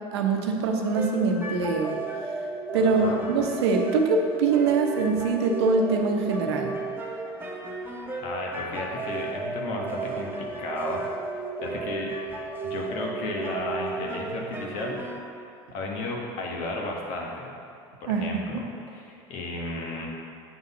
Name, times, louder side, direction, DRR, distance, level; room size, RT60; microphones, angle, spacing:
voice 1, 0.1-2.0 2.7-6.7 18.1-18.2 18.5-18.6, right 4 dB, 90° right, 3 dB, 0.8 m, -23 dB
sound 1, 0.9-15.2, right 3 dB, 15° right, 0.9 m, -34 dB
voice 2, 2.8-3.2 8.2-11.0 11.6-12.1 12.6-15.0 15.7-17.5 18.0-20.1, left 2 dB, 65° left, -1 dB, 1.3 m, -33 dB
8.0 x 3.9 x 5.4 m, 2.5 s
supercardioid pair, 95°, 13 cm